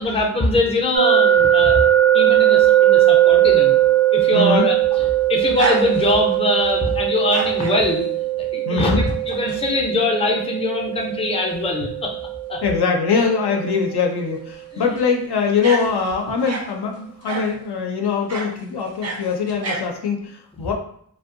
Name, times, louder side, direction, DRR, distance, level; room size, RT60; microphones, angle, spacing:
voice 1, 0.0-1.8 2.1-3.7 4.1-8.1 8.4-12.1 12.5-12.6 14.7-14.9, left 2 dB, 15° left, 0 dB, 0.4 m, -22 dB
sound 1, 0.9-13.8, right 12 dB, 85° right, 0.6 m, -19 dB
voice 2, 4.3-4.7 8.7-9.1 12.6-20.7, left 5 dB, 70° left, 2 dB, 0.5 m, -22 dB
sound 2, 4.5-6.4 7.1-7.8 9.1-9.6 10.0-10.1 11.5-11.6 11.8-11.9 14.8-15.0 15.6-16.7 17.2-17.6 18.3-18.5 18.8-19.9, right 3 dB, 40° right, 0.4 m, -29 dB
2.6 x 2.1 x 2.5 m, 0.64 s
wide cardioid pair, 65°, 40 cm